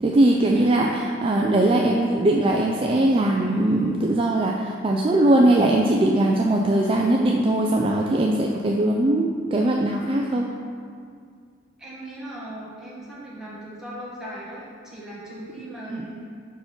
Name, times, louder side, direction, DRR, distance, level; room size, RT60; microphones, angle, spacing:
voice 1, 0.0-10.5 15.9-16.1, right 1 dB, 30° right, 0 dB, 0.3 m, -20 dB
voice 2, 11.8-16.0, right 1 dB, 5° right, -8 dB, 1.5 m, -38 dB
5.2 x 4.6 x 5.8 m, 2.2 s
head